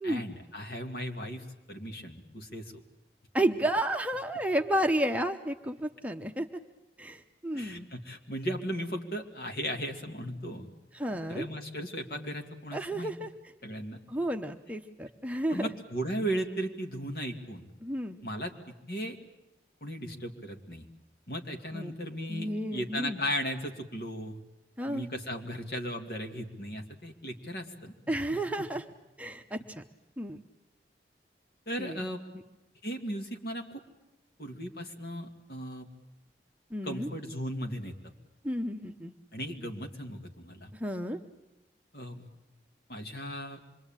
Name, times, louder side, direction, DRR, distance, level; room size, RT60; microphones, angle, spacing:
voice 1, 0.0-2.7 7.5-10.7 11.1-13.1 13.6-14.0 15.5-17.7 18.2-18.5 18.9-19.2 19.8-20.8 21.3-24.4 24.9-27.9 28.3-28.4 31.7-32.2 32.8-33.8 34.4-35.9 36.8-37.9 39.3-40.7 41.9-42.3 42.9-43.6, equal, 60° left, 3 dB, 2.5 m, -36 dB
voice 2, 3.3-6.6 7.0-7.9 10.9-11.5 12.7-13.3 14.1-15.7 17.8-18.2 21.7-21.9 22.3-23.2 24.8-25.1 28.1-28.8 29.2-29.8 30.2-30.4 31.8-32.0 36.7-37.1 38.4-39.1 40.8-41.2, right 1 dB, 10° right, 4 dB, 0.9 m, -31 dB
26.5 x 22.5 x 9.0 m, 0.93 s
head